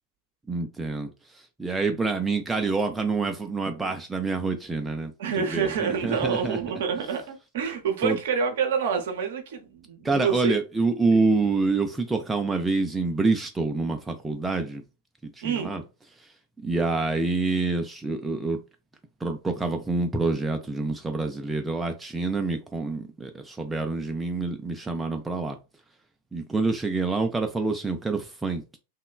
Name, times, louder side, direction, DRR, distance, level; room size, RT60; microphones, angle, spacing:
voice 1, 0.5-5.1 5.4-6.6 8.0-8.2 10.0-14.8 15.2-15.8 16.2-18.6 19.2-25.6 26.3-28.8, right 3 dB, 10° right, 0.3 m, -27 dB
voice 2, 5.2-10.5 11.1-11.2 15.4-15.8, right 6 dB, 55° right, 0.6 m, -27 dB
2.9 x 2.1 x 2.3 m
figure-of-eight pair, 90°, 0 cm